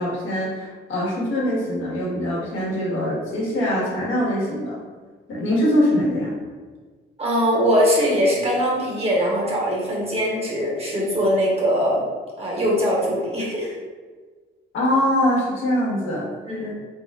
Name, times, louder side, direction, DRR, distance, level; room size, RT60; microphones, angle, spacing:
voice 1, 0.0-4.8 5.3-6.4 14.7-16.2, left 1 dB, 85° left, -6 dB, 1.5 m, -23 dB
voice 2, 7.2-12.0 12.4-13.8 16.5-16.7, equal, 30° right, -4 dB, 1.2 m, -21 dB
3.7 x 3.4 x 2.4 m, 1.4 s
cardioid pair, 90°, 20 cm